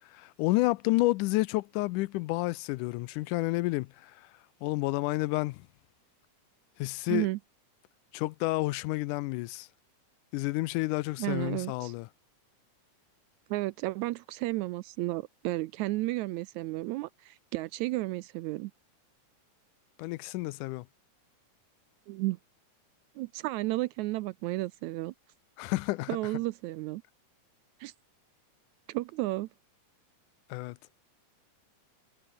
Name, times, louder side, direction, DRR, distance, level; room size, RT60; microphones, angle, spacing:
voice 1, 0.1-4.1 4.6-5.6 6.8-7.3 8.1-9.7 10.3-12.1 20.0-20.9 25.6-26.1 30.5-30.8, left 20 dB, 85° left, 2.1 m, -30 dB
voice 2, 7.1-7.4 11.2-11.9 13.5-18.7 22.1-22.4 23.2-25.1 26.1-27.0 27.8-27.9 28.9-29.5, right 19 dB, 80° right, 1.7 m, -32 dB
omnidirectional pair, 3.6 m